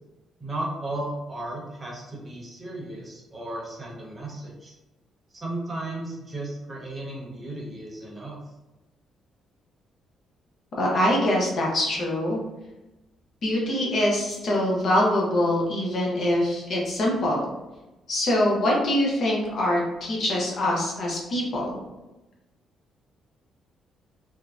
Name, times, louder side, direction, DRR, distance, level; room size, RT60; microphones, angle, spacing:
voice 1, 0.4-4.7 5.3-8.4, right 1 dB, 25° right, -3 dB, 0.8 m, -35 dB
voice 2, 10.8-12.4 13.4-17.5 18.1-21.8, left 1 dB, 60° left, -3 dB, 0.7 m, -24 dB
2.6 x 2.0 x 2.3 m, 1.0 s
cardioid pair, 90°, 0 cm